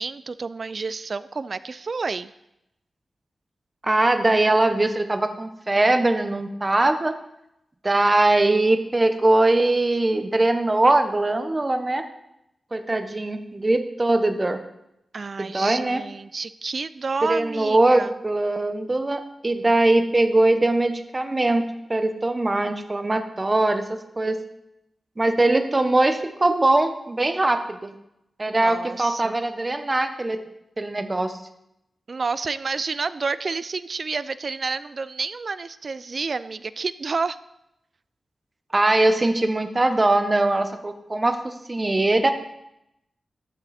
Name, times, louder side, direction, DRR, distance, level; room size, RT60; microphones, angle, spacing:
voice 1, 0.0-2.3 15.1-18.1 28.5-29.4 32.1-37.4, right 4 dB, 50° right, 15 dB, 0.5 m, -29 dB
voice 2, 3.8-7.1 7.8-12.0 12.7-14.6 15.4-16.0 17.2-24.4 25.2-27.9 28.4-30.4 30.8-31.4 38.7-42.3, right 2 dB, 25° right, 8 dB, 1.2 m, -21 dB
14.5 x 12.5 x 4.3 m, 0.83 s
wide cardioid pair, 110°, 0 cm